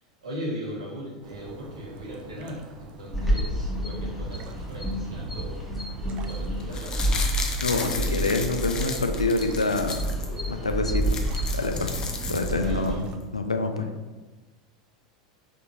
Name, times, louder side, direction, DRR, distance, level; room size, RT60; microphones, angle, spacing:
voice 1, 0.2-5.6 6.2-7.3 12.6-13.0, equal, 70° right, -5 dB, 1.1 m, -38 dB
sound 1, 1.2-13.2, right 2 dB, 35° right, 0.4 m, -41 dB
sound 2, 3.1-13.0, right 1 dB, ahead, 1.1 m, -30 dB
sound 3, 6.6-10.3 10.7-10.8 11.0-12.9 13.2-13.3, left 4 dB, 25° left, 0.5 m, -34 dB
voice 2, 7.6-10.1 10.5-11.2 11.5-11.9 12.3-13.0 13.3-13.9, left 3 dB, 85° left, 5 dB, 0.3 m, -26 dB
3.7 x 2.9 x 2.7 m, 1.2 s
figure-of-eight pair, 85°, 3 cm